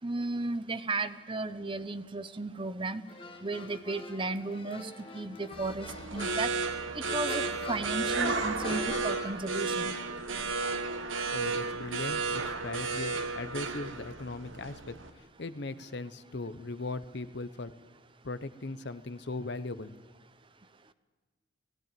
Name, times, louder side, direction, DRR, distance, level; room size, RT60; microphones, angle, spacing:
voice 1, 0.0-3.0 3.4-6.5 6.9-9.9, right 3 dB, 25° right, 12 dB, 0.7 m, -34 dB
sound 1, 3.1-9.3, left 3 dB, 25° left, 1.2 m, -44 dB
sound 2, 5.5-15.1, right 4 dB, 70° right, 1.3 m, -33 dB
voice 2, 11.3-17.7 18.2-19.9, left 3 dB, 55° left, 13 dB, 0.8 m, -39 dB
17.5 x 16.5 x 9.0 m, 1.3 s
head